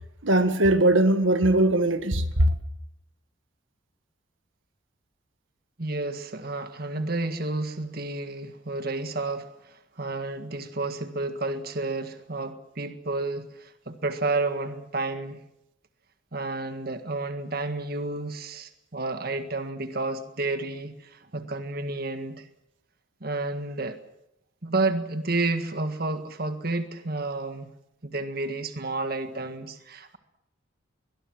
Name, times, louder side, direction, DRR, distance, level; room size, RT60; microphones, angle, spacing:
voice 1, 0.2-2.5, right 1 dB, 80° right, 1.8 m, -20 dB
voice 2, 5.8-15.4 16.3-22.5 23.2-24.0 24.6-27.7 28.0-30.2, right 2 dB, 50° right, 1.8 m, -31 dB
23.0 x 20.5 x 7.7 m
head